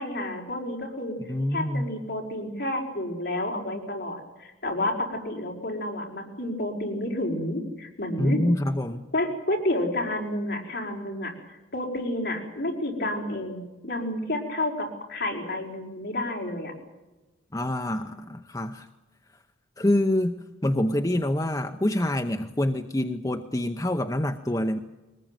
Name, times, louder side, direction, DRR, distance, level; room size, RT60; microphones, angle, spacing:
voice 1, 0.0-1.1 1.5-8.4 9.1-16.7, left 1 dB, 55° left, 0 dB, 5.4 m, -30 dB
voice 2, 1.3-1.9 8.2-9.0 17.5-18.9 19.8-24.8, left 1 dB, 20° left, 6 dB, 0.8 m, -26 dB
22.5 x 20.0 x 9.1 m, 1.1 s
head